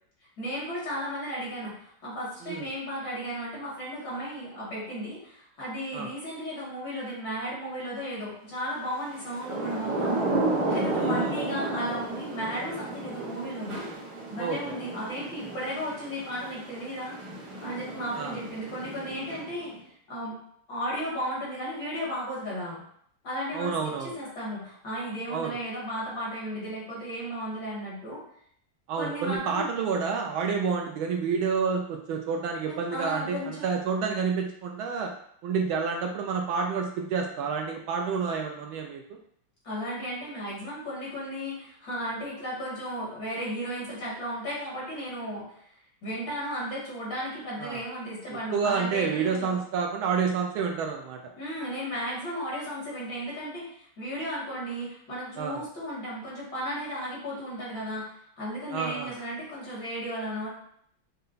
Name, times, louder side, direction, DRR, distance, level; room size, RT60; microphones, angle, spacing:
voice 1, 0.4-10.2 10.7-13.9 14.3-17.2 17.6-19.7 20.1-20.4 20.7-22.8 23.2-28.2 29.0-29.7 32.7-33.7 39.6-45.5 46.0-49.5 51.4-60.5, equal, 55° left, -7 dB, 2.4 m, -35 dB
Thunder / Rain, 9.2-19.7, right 2 dB, 55° right, 1.6 m, -32 dB
voice 2, 10.9-11.3 14.4-14.7 18.1-18.4 23.5-24.1 25.3-25.6 28.9-35.1 35.4-39.2 47.6-47.8 48.5-51.2 55.4-55.6 58.7-59.1, right 5 dB, 75° right, 2 dB, 1.3 m, -29 dB
5.4 x 2.2 x 3.9 m, 0.67 s
omnidirectional pair, 2.4 m